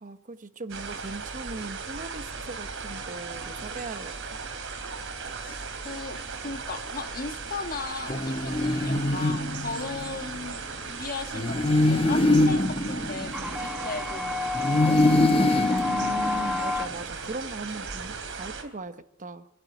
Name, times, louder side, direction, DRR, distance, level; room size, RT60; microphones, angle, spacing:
voice 1, 0.0-4.2 15.8-19.5, right 3 dB, 40° right, 1.0 m, -38 dB
sound 1, 0.7-18.6, right 5 dB, 65° right, 3.4 m, -37 dB
sound 2, 2.9-3.7 13.3-16.9, left 4 dB, 5° right, 1.5 m, -30 dB
voice 2, 5.8-15.5, left 4 dB, 45° left, 1.4 m, -37 dB
sound 3, 8.1-10.2 11.3-14.0 14.5-16.8, left 2 dB, 25° left, 0.9 m, -24 dB
25.0 x 11.5 x 9.0 m
head